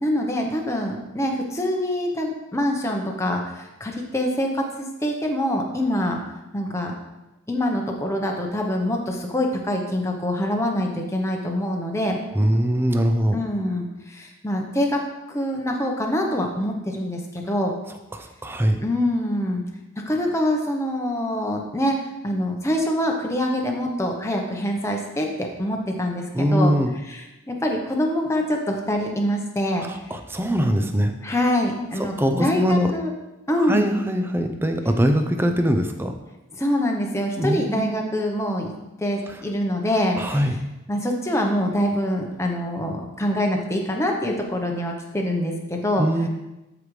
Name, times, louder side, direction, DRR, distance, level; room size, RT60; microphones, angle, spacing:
voice 1, 0.0-6.2 6.5-6.9 7.5-12.2 13.3-15.0 15.3-17.7 18.8-19.6 20.0-22.0 22.2-26.7 27.1-29.9 31.2-33.1 33.5-33.9 36.5-40.4 40.9-46.1, left 1 dB, 15° left, 1 dB, 0.8 m, -25 dB
voice 2, 12.3-13.4 18.1-18.8 26.3-26.9 29.9-31.1 32.0-32.9 33.6-36.1 37.4-37.9 40.2-40.6 46.0-46.3, equal, 10° right, 6 dB, 0.5 m, -22 dB
12.5 x 5.0 x 3.2 m, 1.0 s
head